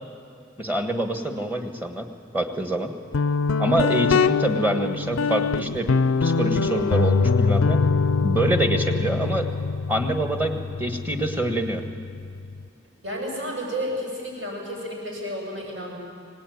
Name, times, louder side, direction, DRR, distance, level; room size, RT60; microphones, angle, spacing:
voice 1, 0.6-2.1 2.3-2.9 3.6-5.9 6.2-7.8 8.2-9.5 9.9-11.8, right 1 dB, 10° right, 5 dB, 1.6 m, -25 dB
Guitar, 3.1-12.6, left 4 dB, 85° left, 0.5 m, -23 dB
voice 2, 13.0-16.0, equal, 65° right, -1 dB, 7.9 m, -31 dB
24.5 x 19.0 x 9.4 m, 2.3 s
head